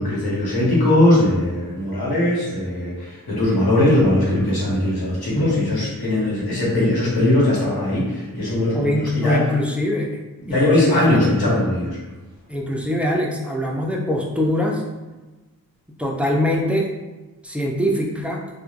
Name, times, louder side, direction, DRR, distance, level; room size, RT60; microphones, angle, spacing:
voice 1, 0.0-9.4 10.4-12.0, left 1 dB, 90° left, -6 dB, 1.1 m, -20 dB
voice 2, 8.7-10.2 10.5-11.2 12.5-14.8 16.0-16.9 17.4-18.4, left 1 dB, 5° right, -2 dB, 0.5 m, -23 dB
3.0 x 2.2 x 2.4 m, 1.1 s
wide cardioid pair, 50°, 36 cm